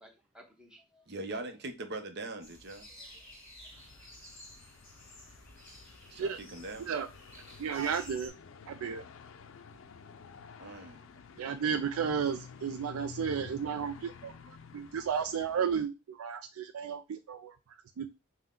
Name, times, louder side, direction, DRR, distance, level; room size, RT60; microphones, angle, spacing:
voice 1, 0.0-1.1 2.9-3.8, equal, 5° right, 0.9 m, -60 dB
voice 2, 1.1-2.9 6.1-6.8 10.6-11.1, right 2 dB, 55° right, 0.7 m, -41 dB
sound 1, 2.4-8.3, equal, 15° left, 2.0 m, -52 dB
sound 2, 3.7-15.9, left 6 dB, 65° left, 0.4 m, -51 dB
voice 3, 7.6-8.3 8.7-9.0 11.4-18.1, right 7 dB, 85° right, 0.4 m, -33 dB
5.6 x 2.2 x 3.7 m
head